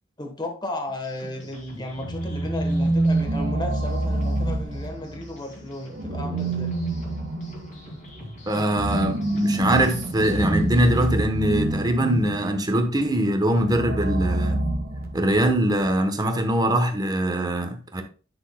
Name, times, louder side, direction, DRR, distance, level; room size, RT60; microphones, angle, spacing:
voice 1, 0.2-6.7, left 1 dB, 20° left, 1.2 m, -34 dB
sound 1, 0.9-11.3, equal, 40° left, 2.5 m, -43 dB
sound 2, 2.0-5.3 5.9-12.6 13.5-15.5, right 1 dB, 45° right, 1.2 m, -26 dB
voice 2, 8.5-14.7 15.1-18.0, right 1 dB, 20° right, 1.0 m, -22 dB
10.0 x 6.2 x 2.2 m
head